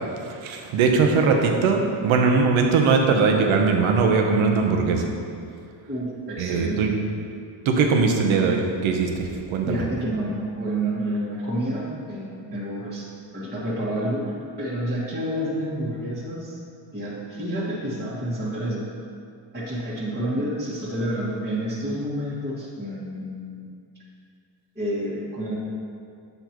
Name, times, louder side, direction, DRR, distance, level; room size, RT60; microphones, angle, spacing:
voice 1, 0.3-5.0 6.4-6.9 7.6-9.8, right 4 dB, 85° right, 3 dB, 1.0 m, -20 dB
voice 2, 5.9-7.0 9.6-13.1 13.3-16.6 16.9-18.9 19.5-23.7 24.7-25.6, right 1 dB, 20° right, -9 dB, 1.6 m, -29 dB
8.1 x 6.6 x 3.0 m, 2.4 s
cardioid pair, 100°, 47 cm